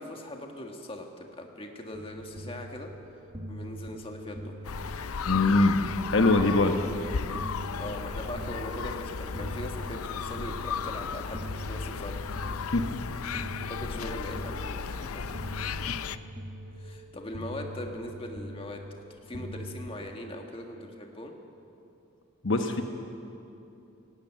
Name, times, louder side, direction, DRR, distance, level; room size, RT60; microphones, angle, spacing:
voice 1, 0.0-2.9 3.5-4.6 7.8-12.3 13.7-15.2 16.8-18.8 19.1-21.3, left 1 dB, 25° left, 2 dB, 1.7 m, -40 dB
sound 1, 1.9-20.0, equal, 25° right, 1.6 m, -42 dB
sound 2, 4.6-16.2, left 6 dB, 90° left, 0.6 m, -35 dB
voice 2, 5.3-5.8 6.1-6.7 12.7-12.9 22.4-22.8, left 2 dB, 60° left, 5 dB, 1.1 m, -22 dB
18.0 x 16.0 x 9.1 m, 2.8 s
head